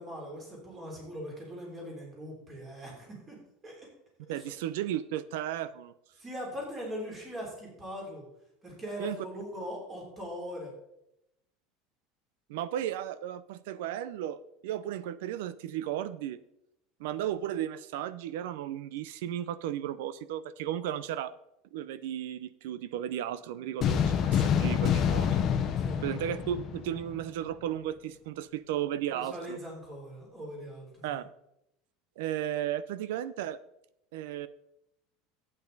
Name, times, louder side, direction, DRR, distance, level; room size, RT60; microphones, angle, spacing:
voice 1, 0.0-3.4 3.6-3.9 4.3-4.4 6.2-8.2 8.6-10.7 25.8-26.0 29.1-31.2, equal, 20° right, -1 dB, 3.4 m, -41 dB
voice 2, 4.3-5.9 9.0-9.3 12.5-16.4 17.0-21.3 21.7-25.4 26.0-29.6 31.0-31.3 32.2-33.6 34.1-34.5, right 11 dB, 75° right, 16 dB, 0.6 m, -34 dB
sound 1, 23.8-27.2, left 8 dB, 30° left, 0.9 m, -27 dB
12.0 x 8.8 x 4.0 m, 0.82 s
cardioid pair, 170°, 0 cm